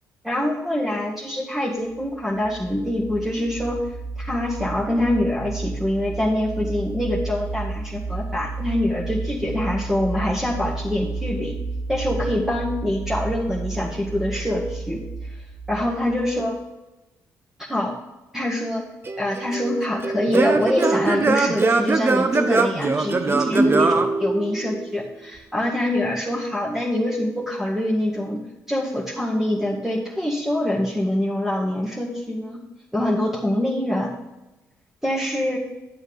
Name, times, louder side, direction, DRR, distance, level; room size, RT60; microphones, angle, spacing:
voice 1, 0.2-3.8 4.2-11.5 11.9-15.0 15.7-16.5 17.7-17.9 18.3-18.8 19.2-28.4 28.7-32.6 32.9-34.2 35.0-35.6, left 1 dB, 5° right, -5 dB, 1.9 m, -25 dB
sound 1, 1.9-16.4, right 3 dB, 90° right, 3.7 m, -32 dB
Singing / Plucked string instrument, 19.1-24.9, right 3 dB, 35° right, 0.9 m, -21 dB
9.6 x 7.8 x 4.0 m, 1.0 s
hypercardioid pair, 50°, 7 cm